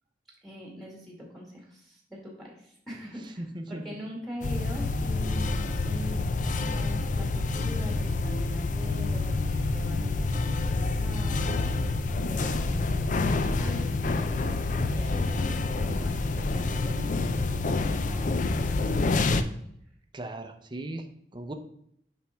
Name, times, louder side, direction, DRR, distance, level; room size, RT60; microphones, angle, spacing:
voice 1, 0.4-6.2 6.5-13.2 13.5-19.2, equal, ahead, -2 dB, 1.8 m, -42 dB
voice 2, 3.4-3.8 20.1-21.0 21.3-21.5, right 1 dB, 25° right, 6 dB, 0.6 m, -37 dB
sound 1, 4.4-19.4, left 3 dB, 45° left, 0.4 m, -27 dB
7.3 x 5.3 x 3.5 m, 0.70 s
head